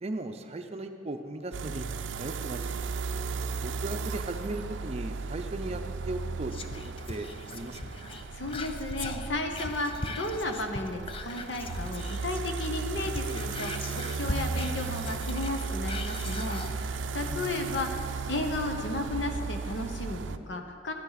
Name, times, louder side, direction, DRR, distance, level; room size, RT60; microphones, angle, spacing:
voice 1, 0.0-1.9 2.2-2.7 3.6-5.8 6.1-6.7 7.1-8.0 17.2-17.8, right 2 dB, 35° right, 7 dB, 0.6 m, -37 dB
sound 1, 1.5-20.4, right 4 dB, 90° right, 0.4 m, -35 dB
Whispering, 6.5-12.5 12.8-16.8 17.2-17.3, left 3 dB, 30° left, 0.5 m, -40 dB
voice 2, 8.1-18.0 18.3-20.9, left 2 dB, 80° left, 4 dB, 1.0 m, -34 dB
12.0 x 11.0 x 4.1 m, 2.5 s
head